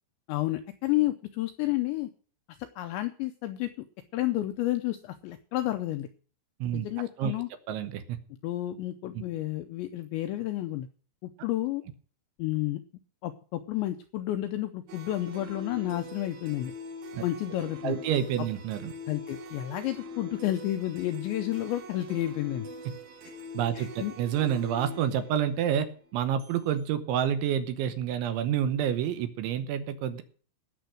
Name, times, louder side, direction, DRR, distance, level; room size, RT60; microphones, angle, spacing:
voice 1, 0.3-2.1 2.6-3.7 4.1-6.1 6.7-7.5 8.4-10.9 11.2-11.8 12.4-12.8 13.2-16.7 17.2-18.0 19.1-22.7 23.2-23.3 23.7-24.1, left 15 dB, 85° left, 8 dB, 2.6 m, -31 dB
voice 2, 7.7-8.2 9.1-9.2 17.1-17.2 17.8-18.9 23.5-23.9 24.2-30.2, right 9 dB, 75° right, 10 dB, 3.1 m, -28 dB
sound 1, 14.9-26.6, left 1 dB, 60° right, 2.8 m, -43 dB
17.5 x 6.9 x 6.3 m, 0.42 s
omnidirectional pair, 6.0 m